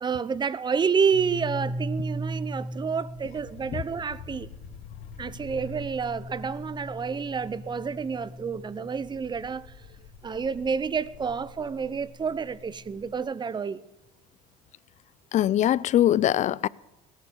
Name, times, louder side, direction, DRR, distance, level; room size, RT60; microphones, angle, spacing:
voice 1, 0.0-4.5 5.2-9.7 10.2-13.8, right 6 dB, 25° right, 0.7 m, -29 dB
sound 1, 1.1-13.1, equal, 80° left, 1.6 m, -39 dB
voice 2, 15.3-16.7, left 12 dB, 40° left, 0.4 m, -22 dB
17.0 x 9.9 x 7.0 m
supercardioid pair, 90°, 19 cm